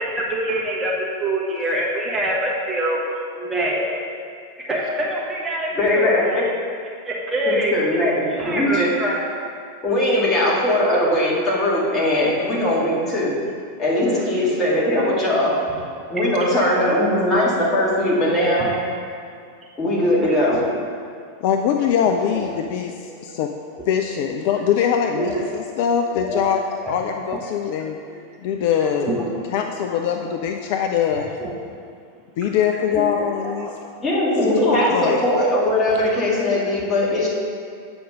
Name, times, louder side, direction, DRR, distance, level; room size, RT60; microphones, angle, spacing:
voice 1, 0.0-3.0 3.4-4.0 4.6-6.5 7.0-7.7 8.3-9.3 15.0-15.2 15.8-15.9 18.6-18.9 20.2-20.8 22.3-22.5 23.1-23.2 25.2-25.5 26.2-26.4 26.8-27.0 27.2-27.7 28.8-29.5 29.9-30.0 31.1-31.5 32.9-33.7 36.0-36.1 36.5-36.7, right 1 dB, 10° right, -5 dB, 1.4 m, -26 dB
voice 2, 5.8-6.4 7.5-8.9 9.8-13.3 13.8-15.5 16.1-18.7 19.8-20.6 34.0-37.3, left 1 dB, 20° left, -6 dB, 2.2 m, -20 dB
voice 3, 21.4-23.5 23.9-26.6 26.9-28.0 28.4-29.2 29.5-31.3 32.4-33.7 34.4-35.2, left 8 dB, 50° left, 4 dB, 0.4 m, -22 dB
7.8 x 5.2 x 5.2 m, 2.2 s
figure-of-eight pair, 90°, 0 cm